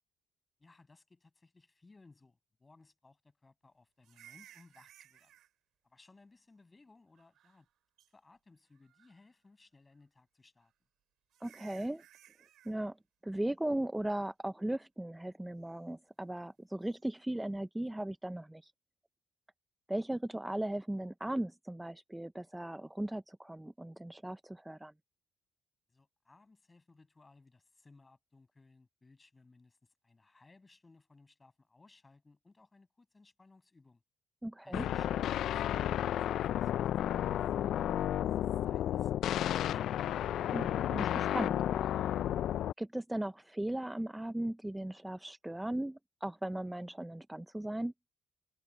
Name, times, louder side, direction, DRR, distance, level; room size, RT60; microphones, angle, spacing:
voice 1, 0.6-5.4 5.8-7.7 8.1-10.7 25.9-34.0 34.6-40.0, left 3 dB, 25° left, 6.5 m, -62 dB
sound 1, 4.0-5.5 7.2-7.7 8.0-8.1 8.8-9.3 10.6-10.7 11.3-12.8 16.8-17.0, right 12 dB, 80° right, 6.1 m, -59 dB
voice 2, 11.4-12.0 12.6-13.0 13.2-18.7 19.9-24.9 34.4-34.9 40.5-42.1 42.8-47.9, right 1 dB, 10° right, 0.6 m, -37 dB
sound 2, 34.7-42.7, left 11 dB, 75° left, 0.3 m, -32 dB
cardioid pair, 90°, 0 cm